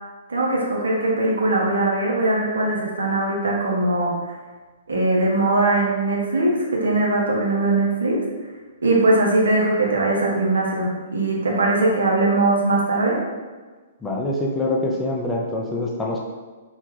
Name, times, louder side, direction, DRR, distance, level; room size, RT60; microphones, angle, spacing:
voice 1, 0.3-4.1 4.9-8.2 8.8-13.2, right 2 dB, 75° right, -2 dB, 0.6 m, -20 dB
voice 2, 14.0-16.2, left 1 dB, 10° left, -2 dB, 0.4 m, -25 dB
2.2 x 2.2 x 3.1 m, 1.4 s
figure-of-eight pair, 120°, 0 cm